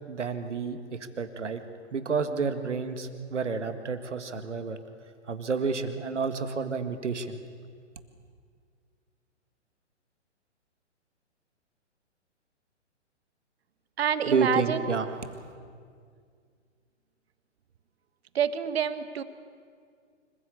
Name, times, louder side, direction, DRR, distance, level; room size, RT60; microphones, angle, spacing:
voice 1, 0.1-1.6 1.9-4.8 5.3-7.4 14.2-15.2, right 4 dB, 75° right, 9 dB, 2.0 m, -30 dB
voice 2, 14.0-14.8 18.3-19.2, right 8 dB, 55° right, 13 dB, 1.4 m, -27 dB
25.5 x 15.5 x 8.4 m, 2.1 s
figure-of-eight pair, 125°, 36 cm